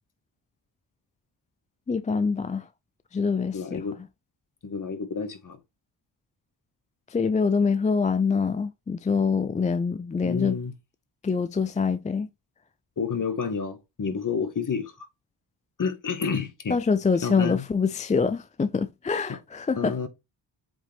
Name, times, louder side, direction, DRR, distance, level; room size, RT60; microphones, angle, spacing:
voice 1, 1.9-2.7 3.1-3.8 7.1-10.6 11.2-12.3 16.7-19.9, left 5 dB, 20° left, 0.3 m, -25 dB
voice 2, 3.5-4.0 4.6-5.6 10.2-10.7 13.0-15.1 15.8-16.8 17.2-17.7 19.3-19.4 19.8-20.1, left 5 dB, 45° left, 1.6 m, -30 dB
7.9 x 3.6 x 3.4 m
cardioid pair, 85°, 45 cm